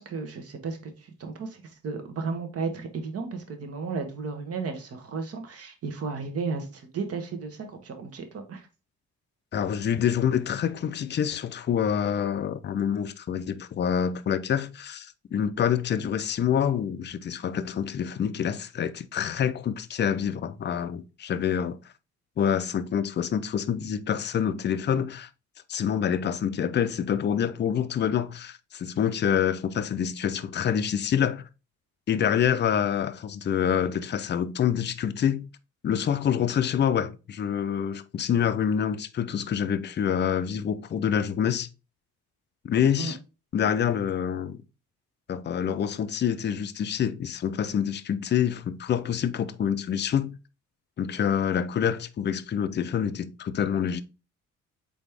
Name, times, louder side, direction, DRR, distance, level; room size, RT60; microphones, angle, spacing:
voice 1, 0.0-8.7 43.0-43.1, right 4 dB, 50° right, 1.1 m, -34 dB
voice 2, 9.5-21.8 22.4-25.3 25.7-31.4 32.1-35.5 35.8-41.7 42.6-43.2 43.5-44.6 45.3-50.4 51.0-54.0, left 8 dB, 35° left, 0.5 m, -26 dB
4.0 x 3.5 x 3.3 m
cardioid pair, 90°, 30 cm